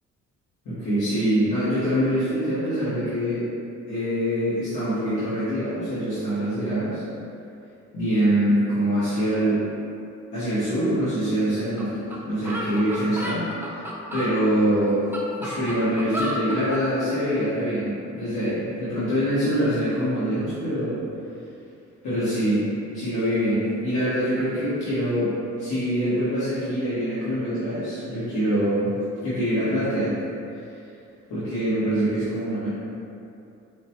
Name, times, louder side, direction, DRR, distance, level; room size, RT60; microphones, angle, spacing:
voice 1, 0.6-3.4 3.9-7.0 7.9-9.6 10.3-13.9 14.1-15.0 15.4-21.0 22.0-22.6 22.9-25.3 25.6-28.9 29.2-30.1 31.3-32.7, equal, 80° left, -14 dB, 1.2 m, -24 dB
sound 1, 11.8-11.9 12.1-12.2 12.4-14.3 14.9-16.8, equal, 5° right, 0.5 m, -31 dB
5.0 x 2.1 x 2.8 m, 2.6 s
cardioid pair, 90°, 30 cm